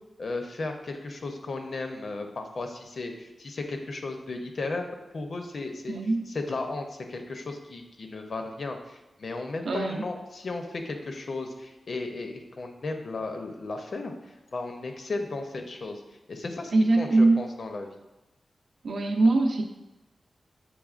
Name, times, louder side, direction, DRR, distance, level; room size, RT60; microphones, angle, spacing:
voice 1, 0.2-4.9 5.1-5.9 6.3-16.0 16.3-18.0, left 3 dB, 60° left, 5 dB, 0.5 m, -35 dB
voice 2, 5.9-6.3 9.6-10.0 16.7-17.4 18.8-19.6, right 2 dB, 85° right, 2 dB, 0.5 m, -22 dB
6.2 x 3.2 x 2.4 m, 1.0 s
wide cardioid pair, 105°, 0 cm